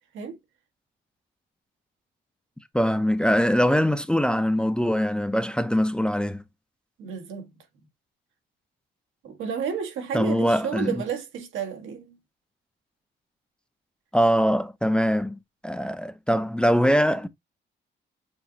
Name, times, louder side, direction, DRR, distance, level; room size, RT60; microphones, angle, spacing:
voice 1, 2.7-6.4 10.1-10.9 14.1-17.3, equal, 5° left, 0.5 m, -22 dB
voice 2, 7.0-7.5 9.2-12.2, right 7 dB, 85° right, 1.5 m, -31 dB
7.0 x 2.7 x 2.7 m
cardioid pair, 90°, 20 cm